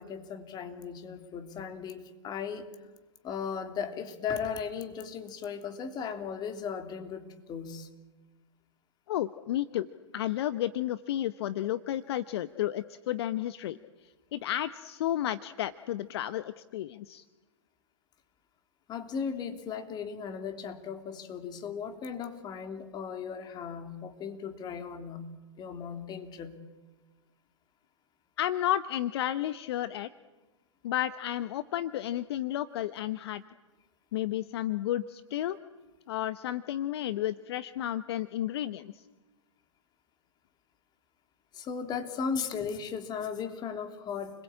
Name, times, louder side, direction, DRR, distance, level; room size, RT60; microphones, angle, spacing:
voice 1, 0.0-2.7 3.2-7.9 18.9-26.6 41.5-44.4, left 6 dB, 25° left, 7 dB, 3.1 m, -37 dB
voice 2, 9.1-9.9 10.1-13.8 14.3-17.2 28.4-30.1 30.8-33.4 34.1-35.6 36.1-39.0, left 12 dB, 55° left, 14 dB, 1.0 m, -32 dB
30.0 x 21.0 x 8.8 m, 1.2 s
hypercardioid pair, 115°, 16 cm